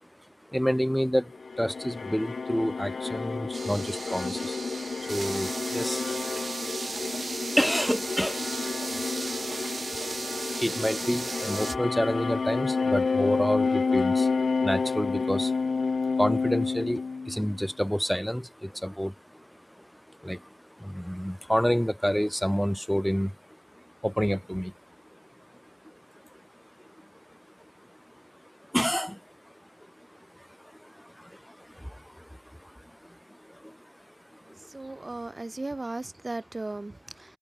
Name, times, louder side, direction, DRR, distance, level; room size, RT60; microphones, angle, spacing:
voice 1, 0.0-35.1, equal, 5° left, 1.9 m, -31 dB
sound 1, 1.3-17.6, left 4 dB, 80° left, 0.7 m, -30 dB
sound 2, 3.5-11.8, right 4 dB, 75° right, 0.6 m, -36 dB
voice 2, 34.5-37.4, right 2 dB, 45° right, 2.7 m, -37 dB
cardioid pair, 40°, 0 cm